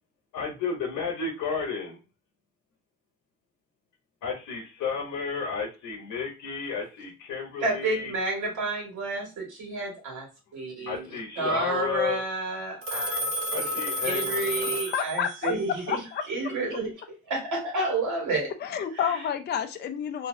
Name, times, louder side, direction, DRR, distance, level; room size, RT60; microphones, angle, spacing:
voice 1, 0.3-2.0 4.2-8.1 10.8-12.2 13.5-14.8, left 5 dB, 85° left, 1 dB, 0.9 m, -32 dB
voice 2, 7.6-11.0 11.4-16.0 16.3-16.9 17.3-18.5, right 2 dB, 80° right, -1 dB, 1.9 m, -30 dB
Telephone, 12.8-15.6, equal, 50° right, 1.0 m, -31 dB
voice 3, 14.8-15.6 15.9-16.2 18.6-20.3, left 8 dB, 35° left, 7 dB, 0.4 m, -29 dB
2.9 x 2.7 x 2.6 m, 0.29 s
cardioid pair, 90°, 30 cm